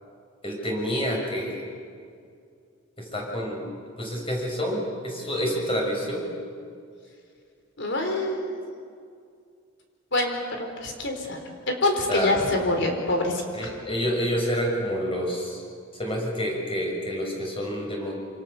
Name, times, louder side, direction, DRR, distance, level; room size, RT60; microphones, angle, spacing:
voice 1, 0.4-1.7 3.0-3.7 4.0-6.3 12.1-12.3 13.5-15.6 16.0-18.1, equal, 30° left, -1 dB, 6.9 m, -28 dB
voice 2, 7.8-8.6 10.1-11.4 11.7-13.8, left 2 dB, 60° left, 3 dB, 4.3 m, -26 dB
27.0 x 26.5 x 7.3 m, 2.3 s
head